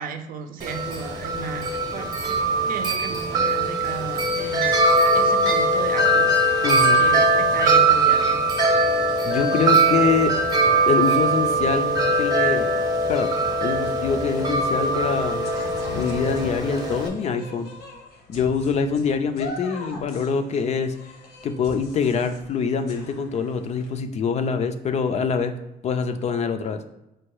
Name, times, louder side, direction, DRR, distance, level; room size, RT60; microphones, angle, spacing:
voice 1, 0.0-2.4 2.7-4.7 5.1-6.7 6.9-8.4, right 5 dB, 55° right, 7 dB, 0.6 m, -34 dB
Wind chime, 0.6-17.1, right 2 dB, 25° right, 0.8 m, -21 dB
voice 2, 6.6-7.0 9.2-10.3 10.9-12.7 13.1-13.3 13.6-15.5 15.9-17.7 18.3-20.9 21.4-25.5 25.8-26.8, left 5 dB, 40° left, 8 dB, 0.4 m, -24 dB
sound 1, 13.8-23.9, left 3 dB, 85° left, 1.0 m, -41 dB
4.5 x 2.3 x 4.6 m, 0.92 s
cardioid pair, 110°, 17 cm